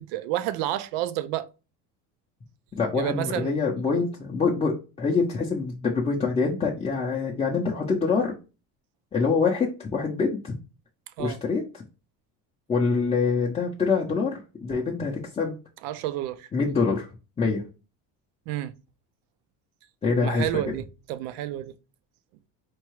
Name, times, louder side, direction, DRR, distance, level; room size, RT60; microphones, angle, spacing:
voice 1, 0.0-1.5 2.9-3.5 11.2-11.4 15.8-16.5 18.5-18.7 20.2-21.8, right 13 dB, 85° right, 0.5 m, -30 dB
voice 2, 2.7-8.4 9.1-10.5 11.2-11.8 12.7-15.5 16.5-17.1 17.4-17.6 20.0-20.4, left 4 dB, 15° left, 0.5 m, -25 dB
4.5 x 2.3 x 3.1 m
cardioid pair, 130°, 40 cm